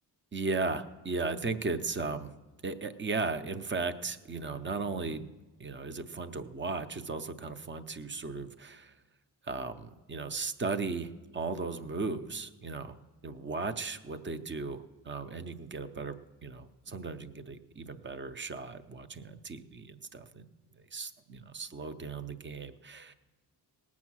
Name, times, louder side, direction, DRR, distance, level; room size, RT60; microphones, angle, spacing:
voice 1, 0.3-2.3 2.6-5.3 5.6-8.9 9.4-13.0 13.2-16.2 16.4-20.5 20.9-23.1, right 3 dB, 30° right, 11 dB, 0.5 m, -36 dB
18.5 x 7.3 x 6.0 m, 1.1 s
wide cardioid pair, 150°, 42 cm